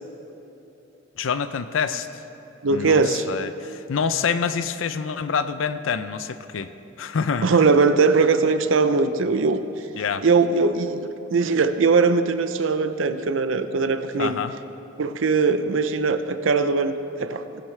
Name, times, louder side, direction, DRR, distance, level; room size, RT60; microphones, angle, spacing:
voice 1, 1.2-2.1 2.7-6.7 7.0-7.5 9.9-10.2 14.2-14.5, left 6 dB, 75° left, 11 dB, 0.5 m, -26 dB
voice 2, 2.6-3.3 7.4-9.6 10.2-14.4 15.0-17.6, right 4 dB, 75° right, 10 dB, 0.6 m, -20 dB
18.5 x 12.0 x 3.3 m, 3.0 s
head